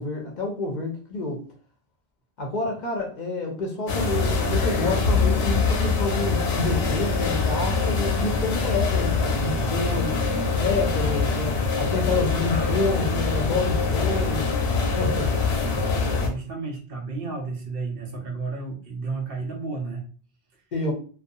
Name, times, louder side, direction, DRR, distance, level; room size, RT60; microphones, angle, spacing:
voice 1, 0.0-1.4 2.4-10.2 10.5-14.5 15.0-15.3 20.7-20.9, left 3 dB, 55° left, 1 dB, 0.6 m, -28 dB
sound 1, 3.9-16.3, left 4 dB, 90° left, 0.9 m, -24 dB
voice 2, 9.6-10.0 15.0-15.3 15.7-20.0, right 4 dB, 65° right, 0 dB, 0.9 m, -33 dB
2.5 x 2.3 x 2.6 m, 0.42 s
omnidirectional pair, 1.1 m